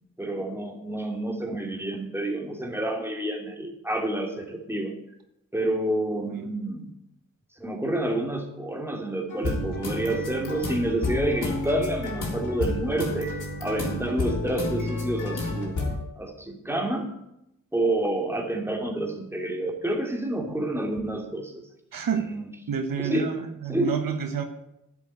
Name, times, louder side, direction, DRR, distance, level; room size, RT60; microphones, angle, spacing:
voice 1, 0.2-4.9 5.5-6.9 7.6-13.3 13.6-15.9 16.2-17.1 17.7-21.6 22.1-22.5 23.0-23.4 23.7-24.0, right 1 dB, 5° right, 1 dB, 2.7 m, -29 dB
sound 1, 9.3-15.9, left 2 dB, 70° left, 3.8 m, -30 dB
voice 2, 21.9-22.3 22.7-24.4, right 7 dB, 85° right, 6 dB, 1.3 m, -29 dB
11.0 x 8.0 x 8.8 m, 0.83 s
cardioid pair, 75°, 33 cm